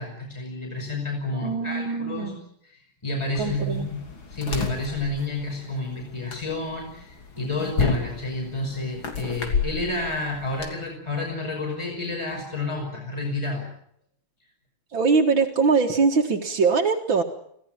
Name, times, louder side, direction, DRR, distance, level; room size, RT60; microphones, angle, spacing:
voice 1, 0.0-2.4 2.6-13.7, left 2 dB, 15° left, 0 dB, 5.7 m, -30 dB
voice 2, 1.3-2.5 3.4-3.9 14.9-17.2, right 4 dB, 65° right, -3 dB, 2.5 m, -22 dB
sound 1, 3.4-10.7, left 4 dB, 70° left, 3.7 m, -31 dB
26.0 x 16.5 x 9.0 m, 0.71 s
omnidirectional pair, 2.3 m